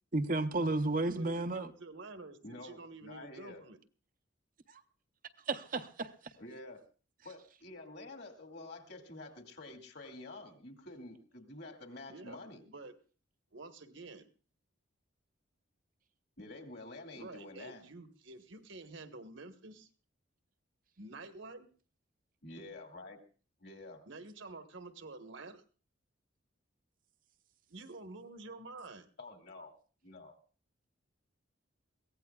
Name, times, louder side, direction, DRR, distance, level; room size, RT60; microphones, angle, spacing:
voice 1, 0.1-1.7 4.7-4.8 5.5-6.1, right 2 dB, 40° right, 0.7 m, -32 dB
voice 2, 1.1-3.8 12.1-12.4 12.7-12.9 13.5-14.3 17.1-19.9 21.0-21.7 24.0-25.6 27.7-29.1, right 3 dB, 70° right, 1.3 m, -49 dB
voice 3, 2.4-3.6 6.4-6.8 7.2-12.6 16.4-17.8 22.4-23.2 23.6-24.0 29.2-29.7 30.0-30.4, left 2 dB, 55° left, 2.3 m, -49 dB
22.5 x 16.5 x 2.3 m
head